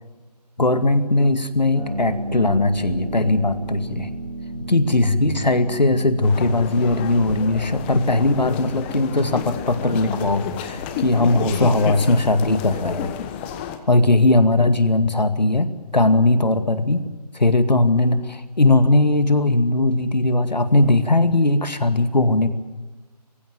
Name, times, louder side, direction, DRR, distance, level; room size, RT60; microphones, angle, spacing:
voice 1, 0.6-4.1 4.5-13.1 13.9-17.1 17.3-22.5, left 2 dB, 85° left, 10 dB, 2.2 m, -19 dB
Harp, 1.8-12.3, right 1 dB, 85° right, 5.1 m, -34 dB
sound 1, 6.2-13.8, left 9 dB, 15° left, 1.1 m, -31 dB
23.0 x 15.5 x 9.5 m, 1.3 s
figure-of-eight pair, 150°, 21 cm